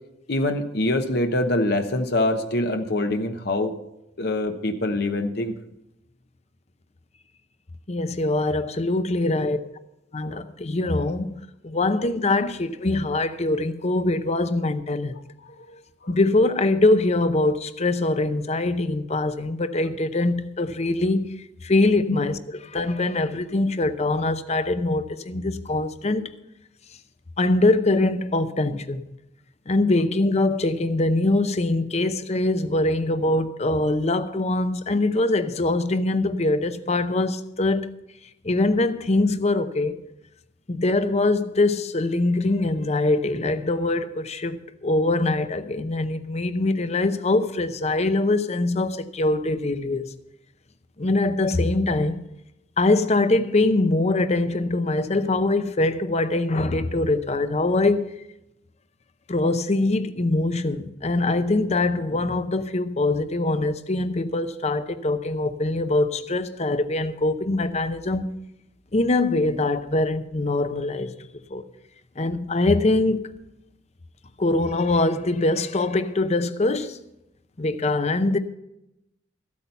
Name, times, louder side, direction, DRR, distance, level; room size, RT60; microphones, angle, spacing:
voice 1, 0.3-3.7 4.2-5.5 9.2-9.3 10.2-10.4 15.4-16.2 22.1-22.2 23.0-23.1, left 1 dB, 60° left, 1.0 m, -25 dB
voice 2, 7.9-9.6 10.1-15.2 16.1-21.4 21.6-22.4 22.6-26.3 27.4-29.0 29.7-37.9 38.4-40.0 40.7-50.1 51.0-52.3 52.8-58.1 59.3-68.3 68.9-71.1 71.5-71.6 72.2-73.3 74.4-77.0 77.6-78.4, left 2 dB, 35° left, 0.7 m, -23 dB
14.5 x 8.5 x 5.6 m
head